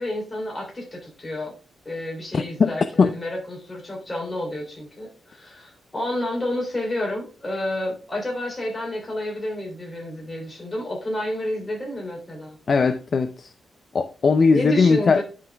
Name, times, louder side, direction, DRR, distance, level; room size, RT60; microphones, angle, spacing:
voice 1, 0.0-1.5 1.8-12.6 14.5-15.2, left 1 dB, 15° left, 3.2 m, -30 dB
voice 2, 2.3-3.1 12.7-13.5 13.9-15.2, left 4 dB, 35° left, 0.5 m, -19 dB
10.0 x 5.7 x 3.4 m
wide cardioid pair, 155°, 0 cm